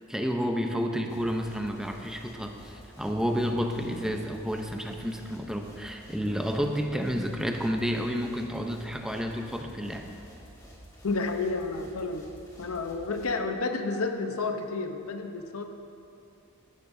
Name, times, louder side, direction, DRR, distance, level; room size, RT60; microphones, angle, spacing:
voice 1, 0.1-10.1, equal, 5° right, 3 dB, 0.7 m, -30 dB
sound 1, 1.1-13.3, equal, 15° left, 1.7 m, -50 dB
voice 2, 11.0-12.3 12.6-15.6, left 3 dB, 80° left, 6 dB, 0.8 m, -30 dB
16.0 x 12.0 x 2.7 m, 2.7 s
head